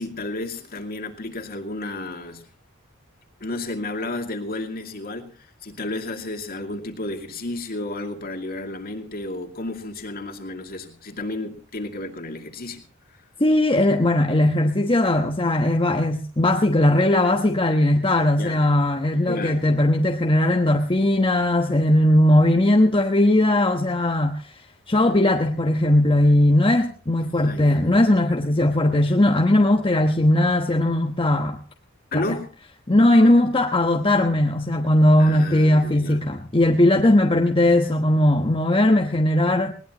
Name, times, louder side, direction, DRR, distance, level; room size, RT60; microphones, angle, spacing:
voice 1, 0.0-2.5 3.4-12.8 18.4-18.7 19.3-19.7 27.2-27.9 32.1-32.5 35.2-36.3, left 2 dB, 45° left, 2.4 m, -32 dB
voice 2, 13.4-24.5 24.9-31.6 32.1-32.2 32.9-39.7, left 1 dB, 25° left, 1.1 m, -19 dB
20.5 x 19.0 x 3.0 m
head